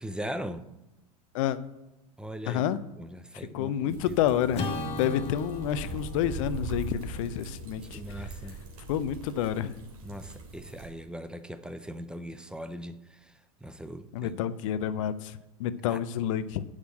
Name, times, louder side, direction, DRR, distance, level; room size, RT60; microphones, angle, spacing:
voice 1, 0.0-0.7 2.2-2.6 3.0-4.2 7.9-8.6 10.0-13.3 13.6-14.5 15.9-16.0, equal, 5° right, 0.6 m, -40 dB
voice 2, 2.5-2.8 3.5-8.0 8.9-9.7 14.1-16.6, left 10 dB, 60° left, 0.7 m, -29 dB
sound 1, 3.9-10.9, right 3 dB, 70° right, 3.2 m, -41 dB
Acoustic guitar / Strum, 4.5-9.0, left 3 dB, 35° left, 2.2 m, -39 dB
6.9 x 6.6 x 7.7 m
hypercardioid pair, 90°, 19 cm